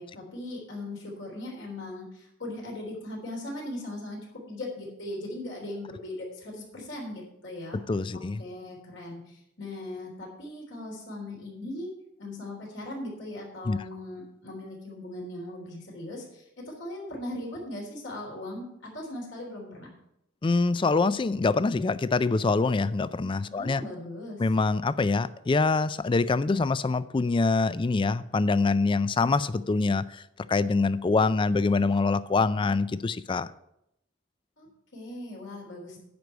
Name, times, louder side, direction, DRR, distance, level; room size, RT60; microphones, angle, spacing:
voice 1, 0.0-4.2 4.5-7.8 8.1-11.9 12.2-18.6 18.9-19.9 23.5-24.4 34.6-36.0, left 1 dB, 65° left, -1 dB, 3.5 m, -39 dB
voice 2, 7.7-8.4 13.7-13.8 20.4-23.8 24.4-30.2 30.5-33.5, left 3 dB, 25° left, 16 dB, 0.3 m, -25 dB
10.5 x 4.7 x 7.8 m, 0.80 s
head